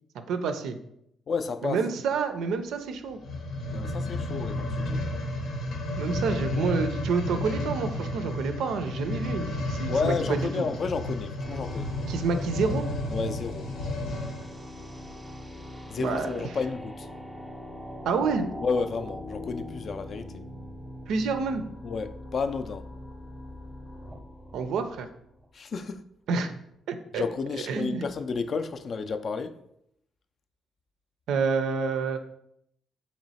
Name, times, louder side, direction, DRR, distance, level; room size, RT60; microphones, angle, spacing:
voice 1, 0.1-0.8 1.6-3.2 6.0-10.7 12.1-12.8 16.0-16.5 18.0-18.5 21.1-21.6 24.5-25.1 26.3-26.5 26.9-27.2 27.7-28.0 31.3-32.2, right 5 dB, 80° right, 0.4 m, -28 dB
voice 2, 1.3-1.8 3.7-5.0 9.9-11.9 13.1-13.7 15.9-17.1 18.6-20.4 21.8-22.9 25.5-26.0 27.1-29.6, left 5 dB, 50° left, 0.3 m, -31 dB
sound 1, 3.1-14.5 15.1-15.2, left 1 dB, 80° left, 0.8 m, -32 dB
sound 2, 11.4-25.5, left 1 dB, 10° right, 0.6 m, -42 dB
3.0 x 3.0 x 4.1 m
cardioid pair, 90°, 0 cm